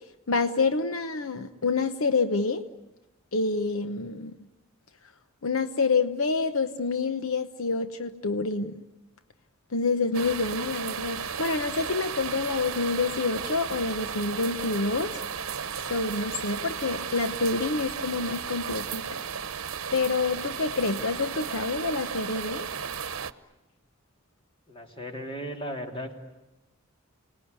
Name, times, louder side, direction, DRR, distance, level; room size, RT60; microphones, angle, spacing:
voice 1, 0.3-2.6 3.3-4.3 5.4-8.8 9.7-15.2 15.9-19.1 19.9-22.7, left 4 dB, 80° left, 9 dB, 1.0 m, -27 dB
sound 1, 10.1-23.3, right 7 dB, 80° right, 1.0 m, -34 dB
voice 2, 24.7-26.2, equal, 25° left, 3 dB, 3.1 m, -36 dB
29.0 x 19.5 x 9.6 m, 1.0 s
head